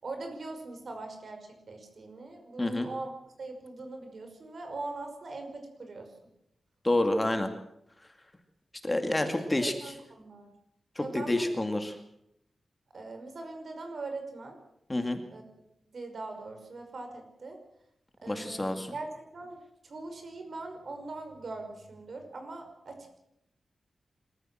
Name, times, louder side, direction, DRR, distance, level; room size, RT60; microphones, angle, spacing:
voice 1, 0.0-3.1 3.4-6.1 9.2-10.5 11.0-11.4 11.7-11.8 12.9-14.6 15.3-15.4 15.9-17.6 18.2-23.2, right 3 dB, 55° right, 5 dB, 5.7 m, -41 dB
voice 2, 2.6-2.9 6.8-7.5 8.8-9.7 11.0-12.0 14.9-15.2 18.3-18.9, left 1 dB, 20° left, 6 dB, 2.3 m, -28 dB
26.0 x 14.5 x 7.8 m, 0.79 s
wide cardioid pair, 115°, 0 cm